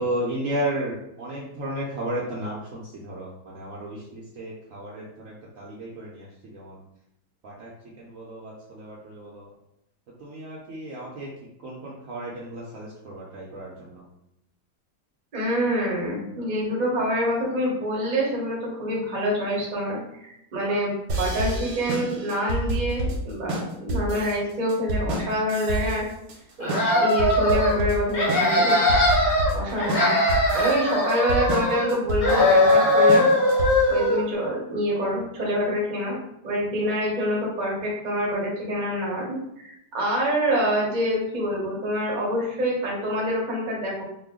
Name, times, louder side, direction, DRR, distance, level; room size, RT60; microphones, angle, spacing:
voice 1, 0.0-6.8 7.4-7.7 8.0-9.5 10.2-11.3 11.6-14.0, right 1 dB, 65° right, -5 dB, 0.9 m, -33 dB
voice 2, 15.3-26.0 26.6-29.0 29.5-33.2 33.9-36.2 36.4-44.0, equal, 35° right, -3 dB, 0.8 m, -26 dB
sound 1, 21.1-34.0, right 1 dB, 85° right, 1.3 m, -29 dB
sound 2, 26.6-27.8 28.1-29.5 29.8-31.9 32.2-34.2, left 1 dB, 15° left, 0.7 m, -20 dB
3.1 x 2.2 x 3.5 m, 0.81 s
omnidirectional pair, 1.8 m